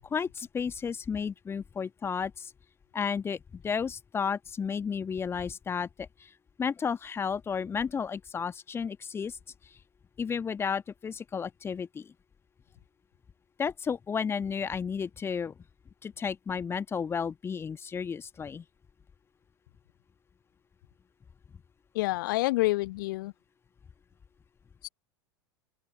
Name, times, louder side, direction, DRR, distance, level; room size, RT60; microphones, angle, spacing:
voice 1, 0.0-2.5 2.9-6.3 6.6-9.4 10.2-12.1 13.6-15.5 16.0-18.6, left 6 dB, 15° left, 1.3 m, -32 dB
voice 2, 22.0-23.3 24.8-24.9, left 20 dB, 50° left, 0.4 m, -28 dB
open air
figure-of-eight pair, 85°, 14 cm